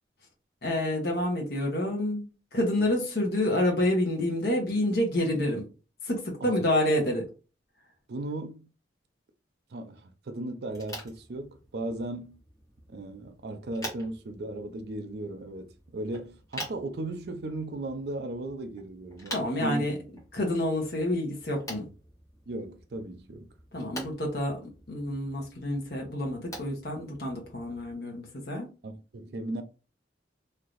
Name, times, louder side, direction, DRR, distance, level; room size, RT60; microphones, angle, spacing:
voice 1, 0.6-2.3 2.5-5.6 6.1-7.2 19.3-19.9 20.3-21.9 23.7-24.6 24.9-28.7, left 1 dB, 55° left, 0.9 m, -28 dB
voice 2, 8.1-8.7 9.7-12.4 12.9-19.9 22.5-23.5 28.8-29.6, right 2 dB, 60° right, 0.4 m, -36 dB
sound 1, 10.7-27.9, equal, 20° left, 1.1 m, -46 dB
3.2 x 2.7 x 2.4 m
head